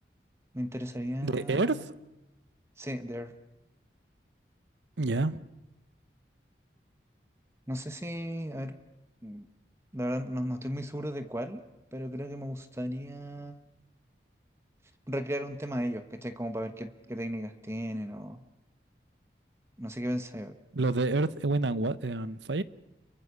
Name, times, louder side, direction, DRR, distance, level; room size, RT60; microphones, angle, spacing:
voice 1, 0.5-1.8 2.8-3.3 7.7-8.7 9.2-9.5 9.9-11.6 11.9-13.7 15.1-18.4 19.8-20.6, equal, 15° right, 1.2 m, -35 dB
voice 2, 1.2-1.9 5.0-5.5 20.7-22.6, right 2 dB, 80° right, 0.9 m, -28 dB
29.5 x 23.5 x 6.8 m
head